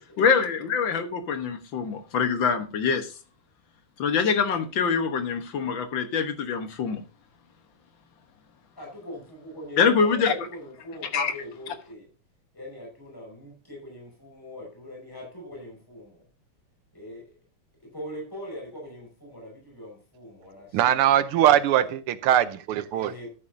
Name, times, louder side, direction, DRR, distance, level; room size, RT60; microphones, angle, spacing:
voice 1, 0.2-3.1 4.0-7.0 9.8-10.3 11.1-11.3, left 6 dB, 60° left, 1.9 m, -24 dB
voice 2, 8.8-12.1 12.5-16.2 16.9-17.3 17.8-21.1 21.7-22.0 22.9-23.3, left 1 dB, 10° left, 5.4 m, -41 dB
voice 3, 20.7-23.1, right 11 dB, 90° right, 1.6 m, -21 dB
13.5 x 8.7 x 2.7 m
omnidirectional pair, 2.4 m